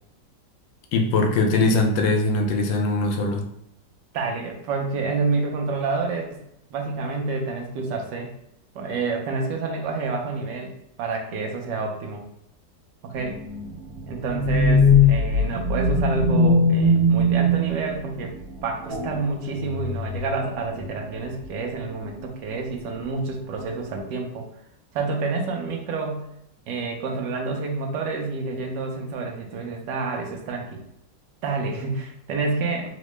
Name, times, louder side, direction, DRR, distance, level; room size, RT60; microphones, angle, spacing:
voice 1, 0.9-3.4, left 2 dB, 90° left, 4 dB, 1.3 m, -21 dB
voice 2, 4.1-6.4 6.7-8.3 8.7-10.7 11.0-12.2 13.0-13.4 14.1-18.4 18.6-24.5 24.9-26.2 26.7-30.8 31.4-32.9, right 4 dB, 75° right, 2 dB, 1.2 m, -28 dB
sound 1, 13.1-18.2 18.8-19.3 19.6-20.3 20.8-21.0 21.4-21.5, left 2 dB, 55° right, 1.5 m, -20 dB
3.7 x 2.1 x 3.1 m, 0.76 s
omnidirectional pair, 2.0 m